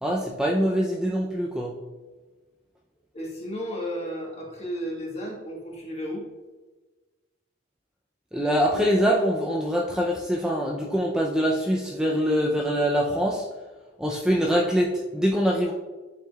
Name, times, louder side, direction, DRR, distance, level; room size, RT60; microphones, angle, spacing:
voice 1, 0.0-1.7 8.3-13.4 14.0-15.7, equal, 5° right, -2 dB, 0.5 m, -24 dB
voice 2, 3.1-6.3, equal, 35° left, -2 dB, 1.5 m, -33 dB
9.1 x 4.8 x 2.3 m, 1.2 s
head